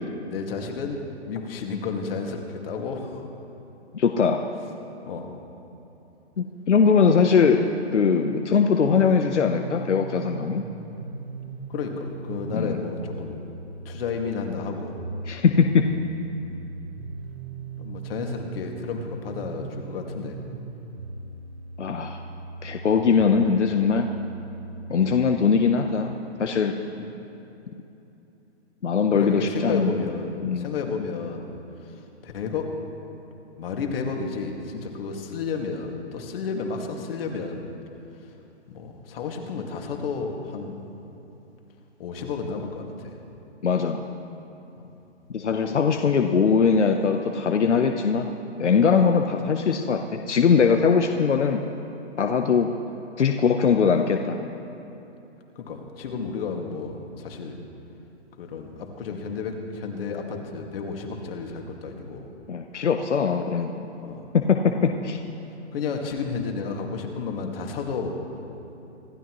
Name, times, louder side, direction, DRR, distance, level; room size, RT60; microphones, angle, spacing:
voice 1, 0.2-3.2 5.0-5.4 11.7-13.4 13.9-14.9 16.4-16.5 17.8-20.4 27.0-27.1 29.1-31.5 31.8-31.9 32.2-32.7 33.6-37.7 38.7-40.7 42.0-43.1 53.6-53.7 55.6-57.6 58.4-62.2 64.0-64.3 65.7-68.2, left 5 dB, 55° left, 2 dB, 2.2 m, -32 dB
voice 2, 3.9-4.4 6.4-7.6 7.9-10.6 12.5-12.8 15.3-15.9 21.8-22.2 22.6-24.1 24.9-26.7 28.8-29.9 30.4-30.7 43.6-44.0 45.3-48.3 48.6-50.0 50.3-51.6 52.2-52.7 53.2-54.4 62.5-63.9 64.3-65.2, left 6 dB, 85° left, 4 dB, 1.0 m, -21 dB
sound 1, 9.0-25.0, right 3 dB, 65° right, 1.9 m, -39 dB
26.5 x 12.5 x 3.1 m, 2.9 s
hypercardioid pair, 135°, 34 cm